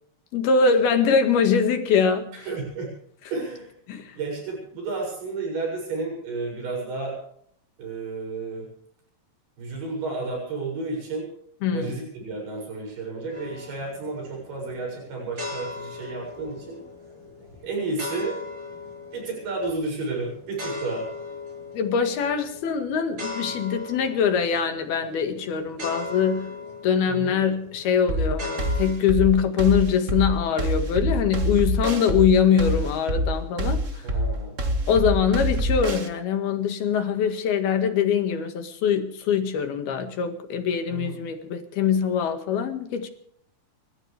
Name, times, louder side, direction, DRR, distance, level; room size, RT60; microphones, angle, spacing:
voice 1, 0.3-2.3 3.9-4.1 11.6-11.9 21.7-26.5 26.8-34.1 34.9-43.1, left 6 dB, 70° left, 3.7 m, -23 dB
voice 2, 2.3-2.9 3.3-3.7 4.2-7.2 7.8-8.7 9.6-11.3 11.7-16.8 17.6-18.4 19.1-21.1 27.1-27.4 34.0-34.6 40.9-41.2, right 3 dB, 75° right, 9.2 m, -32 dB
sound 1, 13.3-28.9, left 3 dB, 30° right, 7.1 m, -38 dB
sound 2, 28.1-36.1, equal, 90° right, 0.6 m, -25 dB
29.0 x 14.5 x 3.4 m
omnidirectional pair, 4.7 m